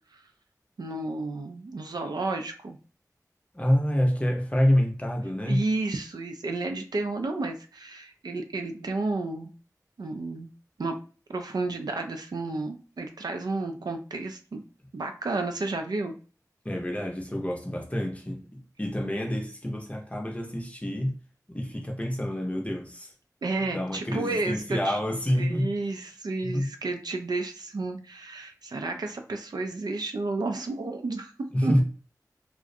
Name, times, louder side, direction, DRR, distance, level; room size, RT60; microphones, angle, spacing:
voice 1, 0.8-2.8 5.4-9.5 10.0-10.5 10.8-11.0 11.3-14.6 14.9-16.1 23.4-25.0 25.4-31.3 31.6-31.8, right 3 dB, 85° right, 0.4 m, -31 dB
voice 2, 3.5-5.6 16.6-21.1 21.5-23.1 23.7-25.7 26.4-26.7 31.5-31.8, equal, 20° left, 0.6 m, -27 dB
2.4 x 2.0 x 2.6 m
wide cardioid pair, 50°, 7 cm